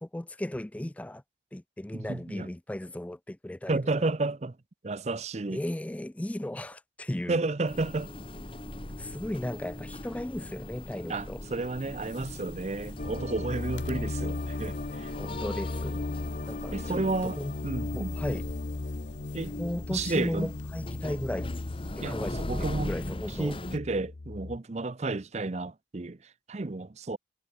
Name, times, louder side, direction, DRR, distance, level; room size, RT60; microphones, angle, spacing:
voice 1, 0.0-1.2 1.5-4.1 5.5-7.4 9.0-11.4 15.2-16.0 16.5-17.5 17.9-18.4 19.6-21.5 22.1-23.6, left 1 dB, 10° left, 0.3 m, -36 dB
voice 2, 1.9-2.5 3.7-4.6 4.8-5.6 7.3-8.1 11.1-15.2 16.7-17.4 17.6-18.2 19.3-19.6 19.9-20.5 22.0-22.9 23.4-27.2, right 3 dB, 35° right, 0.6 m, -32 dB
sound 1, 7.7-23.8, left 1 dB, 30° left, 1.6 m, -40 dB
sound 2, 11.7-21.9, left 2 dB, 85° left, 6.5 m, -53 dB
sound 3, 13.0-24.6, left 2 dB, 45° left, 0.6 m, -36 dB
head